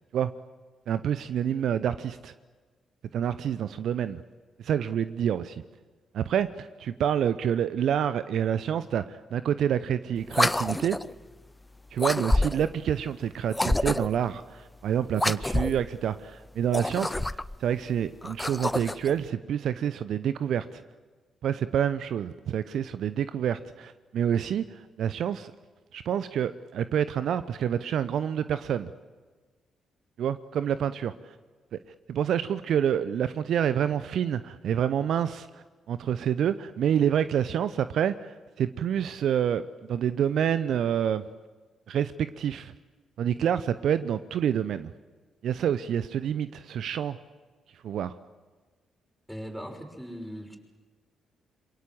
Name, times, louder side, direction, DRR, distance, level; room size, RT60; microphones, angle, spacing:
voice 1, 0.9-2.3 3.1-4.2 4.6-5.6 6.1-11.0 11.9-20.8 21.4-25.5 25.9-28.9 30.2-31.3 31.7-31.8 32.1-39.6 39.9-41.2 41.9-42.7 43.2-44.9 45.4-47.2 47.8-48.2, right 9 dB, 60° right, 14 dB, 0.7 m, -28 dB
sound 1, 10.3-11.1 12.0-12.8 13.5-14.2 15.1-15.9 16.6-17.6 18.2-19.1, left 2 dB, 15° left, 0.7 m, -27 dB
voice 2, 49.3-50.6, equal, ahead, 3 dB, 6.1 m, -39 dB
27.5 x 23.5 x 7.8 m, 1.4 s
figure-of-eight pair, 40°, 0 cm